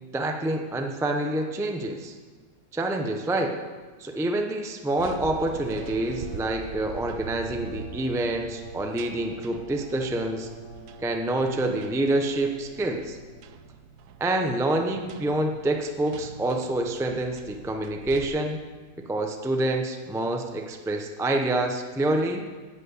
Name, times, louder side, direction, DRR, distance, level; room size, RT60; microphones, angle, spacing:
voice 1, 0.1-2.2 2.7-3.6 4.0-10.5 11.0-13.2 14.2-18.6 19.0-22.4, right 1 dB, 5° right, 4 dB, 0.5 m, -27 dB
sound 1, 4.9-18.2, right 6 dB, 75° right, 1.2 m, -44 dB
sound 2, 5.4-13.7, right 2 dB, 30° left, 4.1 m, -45 dB
11.0 x 8.1 x 8.3 m, 1.4 s
omnidirectional pair, 1.7 m